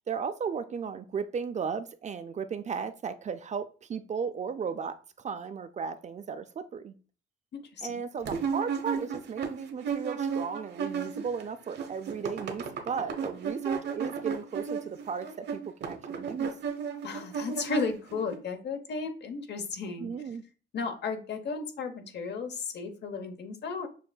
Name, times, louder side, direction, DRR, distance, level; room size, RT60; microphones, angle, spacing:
voice 1, 0.1-6.9 7.8-16.5 20.0-20.4, right 6 dB, 35° right, 10 dB, 0.4 m, -35 dB
voice 2, 7.5-8.0 17.0-20.1 20.7-23.9, left 4 dB, 60° left, 6 dB, 0.8 m, -34 dB
sound 1, 8.3-11.4 11.7-18.4, right 6 dB, 60° right, 0.8 m, -34 dB
6.4 x 2.5 x 2.2 m, 0.37 s
cardioid pair, 90°, 20 cm